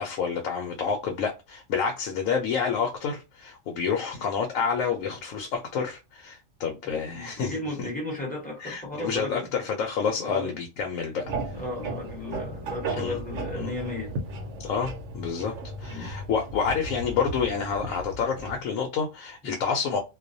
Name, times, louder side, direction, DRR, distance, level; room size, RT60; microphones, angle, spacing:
voice 1, 0.0-7.6 8.6-11.6 13.0-13.2 13.6-13.7 14.6-15.5 15.8-20.0, left 6 dB, 90° left, 1.0 m, -29 dB
voice 2, 6.9-9.5 10.1-10.6 11.5-14.5 15.9-16.2 19.4-19.6, left 2 dB, 5° left, 0.9 m, -35 dB
sound 1, 11.2-18.6, right 2 dB, 70° right, 1.0 m, -35 dB
2.4 x 2.1 x 2.6 m
omnidirectional pair, 1.4 m